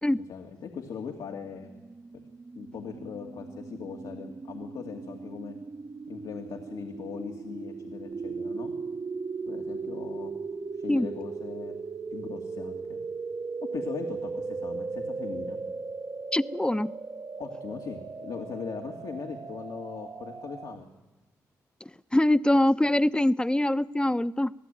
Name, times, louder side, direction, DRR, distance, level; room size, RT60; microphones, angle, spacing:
voice 1, 0.3-1.7 2.5-5.5 6.1-8.7 9.5-10.3 10.8-11.8 12.1-13.0 13.7-15.6 17.4-20.9, left 6 dB, 80° left, 2 dB, 2.6 m, -39 dB
sound 1, 1.6-20.8, right 4 dB, 45° right, 1.2 m, -38 dB
voice 2, 16.3-16.9 21.8-24.5, left 1 dB, 10° left, 15 dB, 1.0 m, -24 dB
27.0 x 17.5 x 9.3 m, 1.1 s
supercardioid pair, 45°, 8 cm